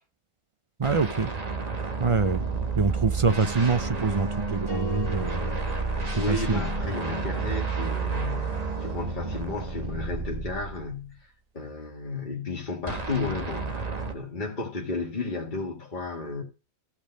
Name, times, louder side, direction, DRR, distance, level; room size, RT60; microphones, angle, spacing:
sound 1, 0.8-11.1 12.9-14.1, right 4 dB, 30° right, 1.4 m, -31 dB
voice 1, 0.8-1.3 2.0-2.4 2.8-5.4 6.3-6.6, right 4 dB, 50° right, 0.3 m, -25 dB
sound 2, 4.7-7.0, right 2 dB, 15° left, 2.3 m, -39 dB
voice 2, 5.8-16.4, left 3 dB, 35° left, 2.0 m, -33 dB
14.0 x 5.3 x 6.4 m
omnidirectional pair, 1.5 m